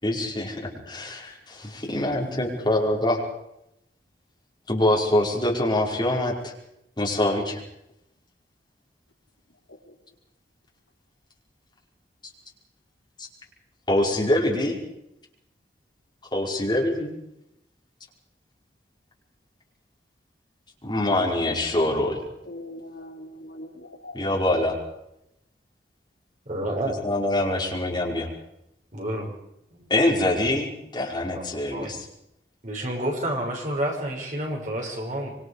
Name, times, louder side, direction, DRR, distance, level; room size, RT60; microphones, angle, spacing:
voice 1, 0.0-3.2 4.7-6.3 7.0-7.6 13.9-14.8 16.3-17.1 20.8-22.2 24.1-24.8 27.0-28.3 29.9-32.0, left 1 dB, 25° left, -2 dB, 5.5 m, -24 dB
voice 2, 22.4-24.2, left 1 dB, 80° left, 1 dB, 4.4 m, -41 dB
voice 3, 26.4-27.0 28.9-29.3 29.7-30.0 31.3-31.9 32.6-35.4, right 1 dB, 45° right, -1 dB, 6.4 m, -30 dB
25.5 x 25.0 x 5.0 m, 0.84 s
head